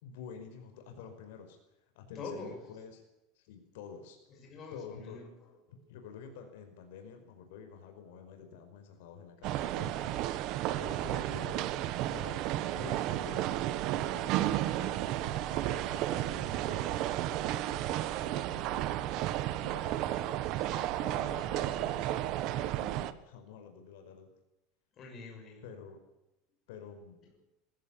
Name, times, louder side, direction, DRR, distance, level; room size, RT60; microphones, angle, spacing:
voice 1, 0.0-1.6 1.9-3.0 3.3-4.2 4.7-5.2 5.9-10.5 10.7-11.7 12.0-19.3 19.6-20.7 21.0-24.3 25.6-26.0 26.7-27.2, left 6 dB, 70° left, 6 dB, 5.1 m, -49 dB
voice 2, 2.1-2.6 4.3-5.5 10.9-11.3 20.6-22.0 24.9-25.6, left 3 dB, 25° left, 1 dB, 6.6 m, -46 dB
sound 1, 9.4-23.1, right 13 dB, 40° right, 1.3 m, -33 dB
21.5 x 16.0 x 8.7 m, 0.90 s
supercardioid pair, 175°, 0 cm